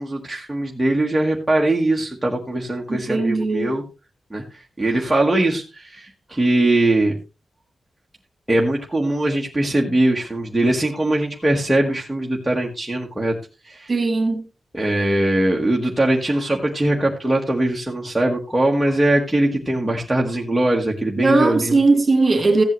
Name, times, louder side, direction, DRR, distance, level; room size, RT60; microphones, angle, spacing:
voice 1, 0.0-3.8 4.3-7.2 8.5-13.3 13.6-13.9 14.7-21.8, right 1 dB, 5° right, 1.4 m, -21 dB
voice 2, 2.9-3.7 13.9-14.4 21.2-22.6, right 3 dB, 30° right, 2.5 m, -18 dB
15.0 x 8.5 x 3.1 m
wide cardioid pair, 165°, 0 cm